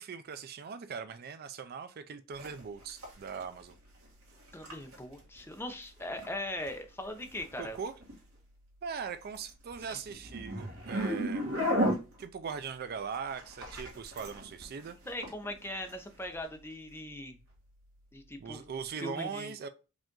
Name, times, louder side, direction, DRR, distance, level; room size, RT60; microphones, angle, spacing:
voice 1, 0.0-3.7 7.6-7.9 8.8-11.5 12.2-15.0 18.4-19.7, right 6 dB, 45° right, 0.4 m, -40 dB
sound 1, 2.3-18.9, equal, 75° right, 1.7 m, -39 dB
voice 2, 4.5-7.8 9.9-10.0 15.1-17.4 18.1-18.6 19.0-19.5, left 1 dB, 10° left, 0.6 m, -40 dB
5.0 x 2.5 x 3.7 m
head